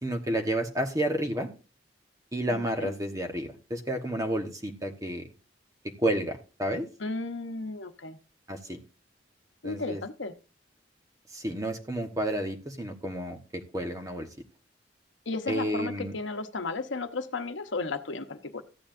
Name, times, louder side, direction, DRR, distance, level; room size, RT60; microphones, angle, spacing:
voice 1, 0.0-1.5 2.3-5.2 6.0-6.9 8.5-8.8 9.6-10.0 11.3-14.3 15.5-16.2, right 1 dB, 20° right, 4 dB, 1.2 m, -31 dB
voice 2, 2.5-2.9 7.0-8.2 9.6-10.3 15.3-18.6, left 3 dB, 80° left, 6 dB, 1.0 m, -34 dB
14.5 x 9.7 x 2.6 m, 0.32 s
head